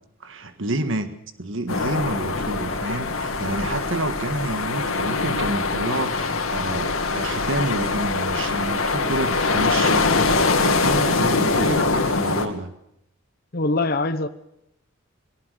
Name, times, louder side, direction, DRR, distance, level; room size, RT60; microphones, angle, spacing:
voice 1, 0.2-1.1 1.4-10.2 10.6-12.7, right 2 dB, 65° right, 8 dB, 1.8 m, -29 dB
sound 1, 1.7-12.5, left 3 dB, 85° left, 2.4 m, -23 dB
voice 2, 13.5-14.3, left 2 dB, 45° left, 9 dB, 1.0 m, -23 dB
22.0 x 18.0 x 6.9 m, 0.79 s
head